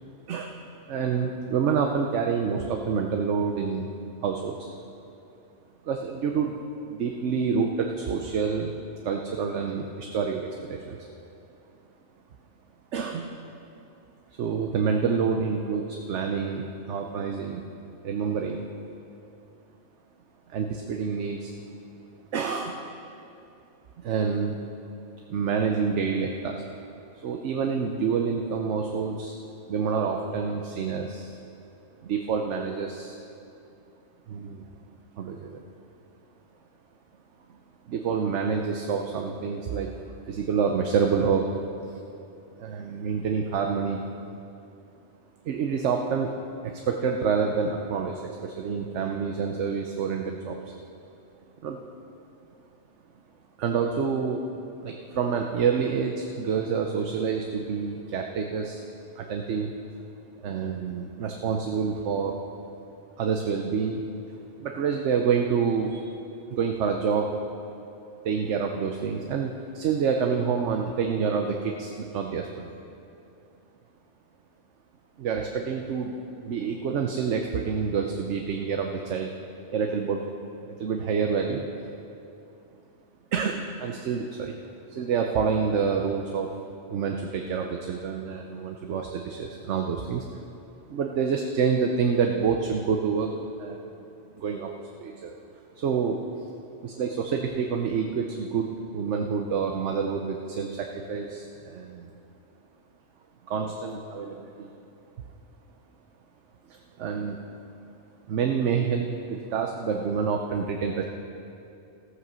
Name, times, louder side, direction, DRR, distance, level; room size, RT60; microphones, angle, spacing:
voice 1, 0.9-3.9 4.2-4.7 5.8-6.6 6.9-8.7 9.0-11.0 12.9-13.3 14.3-17.6 18.0-18.6 20.5-21.5 22.3-22.8 24.0-24.6 25.3-26.6 27.2-29.4 29.7-31.4 32.0-33.2 34.3-34.7 35.2-35.6 37.9-39.9 40.3-41.5 42.6-44.0 45.4-46.3 46.6-50.6 51.6-51.8 53.6-54.4 54.8-58.8 59.2-59.7 60.4-62.4 63.2-64.0 64.6-66.1 66.5-67.3 68.2-72.7 75.2-76.2 76.4-79.3 79.7-80.2 80.6-81.6 83.3-84.5 84.9-86.6 86.9-90.2 90.9-93.3 93.6-93.9 94.4-95.4 95.8-96.2 96.8-102.1 103.5-104.7 106.7-107.4 108.3-111.0, right 6 dB, 80° right, 3 dB, 1.1 m, -27 dB
15.0 x 8.2 x 6.2 m, 2.7 s
omnidirectional pair, 1.2 m